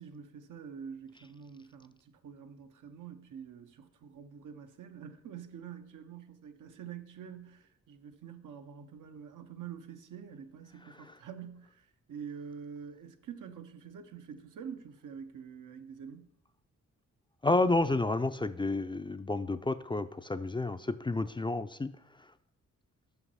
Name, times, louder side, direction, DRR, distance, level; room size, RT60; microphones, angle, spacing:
voice 1, 0.0-16.3, right 7 dB, 85° right, 0.7 m, -46 dB
voice 2, 17.4-21.9, left 2 dB, 15° left, 0.3 m, -30 dB
5.9 x 5.8 x 5.5 m
cardioid pair, 75°, 30 cm